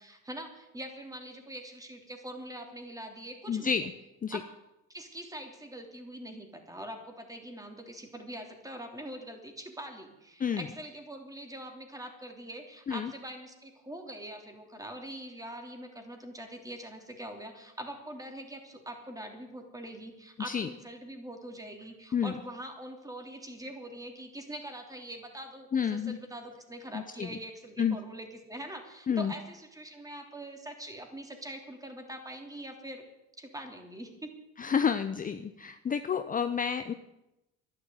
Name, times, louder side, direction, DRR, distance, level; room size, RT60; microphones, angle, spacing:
voice 1, 0.0-3.9 4.3-4.4 4.9-33.0 33.4-34.4, right 1 dB, 10° right, 4 dB, 3.2 m, -43 dB
voice 2, 3.5-3.8 4.2-4.4 10.4-10.6 12.9-13.1 20.5-20.7 22.1-22.3 25.7-26.2 26.9-27.3 27.8-28.0 29.1-29.3 34.6-36.9, left 7 dB, 25° left, 9 dB, 0.8 m, -29 dB
11.5 x 10.5 x 9.2 m, 0.92 s
supercardioid pair, 95°, 32 cm